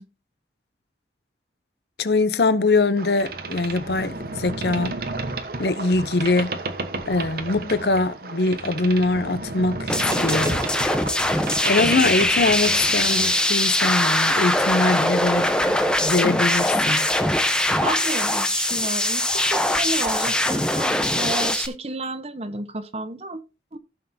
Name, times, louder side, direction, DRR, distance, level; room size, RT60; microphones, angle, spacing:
voice 1, 2.0-4.9 5.6-6.6 7.1-9.9 10.2-10.6 11.6-17.1, left 3 dB, 65° left, 0.7 m, -23 dB
Boat Water vehicle, 3.0-13.5, right 3 dB, 55° right, 1.2 m, -32 dB
sound 1, 9.9-21.7, left 1 dB, 5° left, 0.8 m, -22 dB
voice 2, 17.5-23.4 23.7-23.8, right 2 dB, 35° right, 0.9 m, -31 dB
16.0 x 6.5 x 2.8 m
head